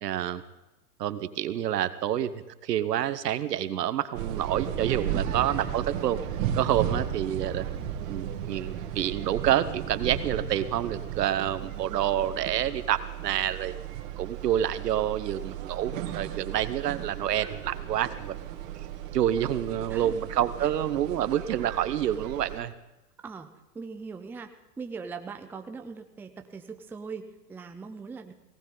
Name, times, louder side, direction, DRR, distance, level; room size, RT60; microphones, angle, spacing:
voice 1, 0.0-0.4 1.0-6.2 6.5-7.6 8.1-13.7 14.2-18.3 19.1-22.7, right 11 dB, 80° right, 13 dB, 1.2 m, -28 dB
sound 1, 4.1-22.6, right 10 dB, 55° right, 2.3 m, -35 dB
voice 2, 23.7-24.5 24.8-28.3, right 5 dB, 5° right, 6 dB, 0.5 m, -40 dB
18.5 x 18.0 x 3.9 m, 0.99 s
hypercardioid pair, 130°, 47 cm